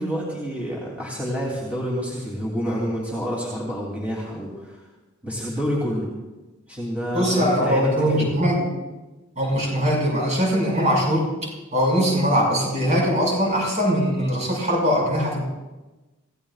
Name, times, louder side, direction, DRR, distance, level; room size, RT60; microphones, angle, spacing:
voice 1, 0.0-4.8 5.2-6.1 6.7-8.4, equal, 5° right, -5 dB, 3.1 m, -28 dB
voice 2, 7.1-8.7 9.4-11.3 11.7-15.5, equal, 35° right, -2 dB, 5.9 m, -21 dB
27.0 x 16.5 x 2.5 m, 1.1 s
head